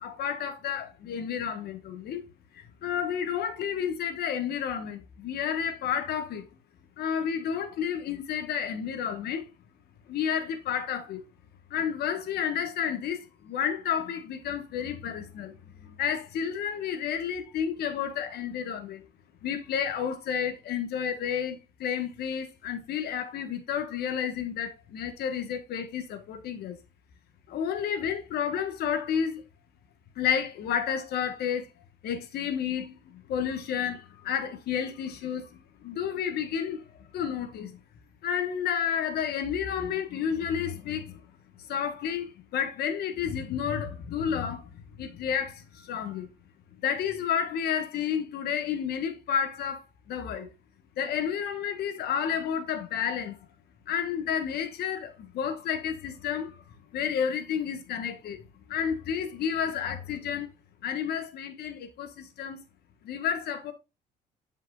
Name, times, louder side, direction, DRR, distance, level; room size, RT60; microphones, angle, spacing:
voice 1, 0.0-2.2 2.5-6.5 7.0-9.5 10.1-11.2 11.7-15.5 15.8-19.0 19.4-26.8 27.5-29.4 30.2-31.7 32.0-37.7 38.2-41.2 41.6-46.3 46.8-50.5 51.0-53.5 53.9-56.6 56.9-58.4 58.7-60.5 60.8-62.6 63.0-63.7, left 8 dB, 70° left, 1.4 m, -31 dB
7.4 x 5.5 x 2.4 m
cardioid pair, 110°, 17 cm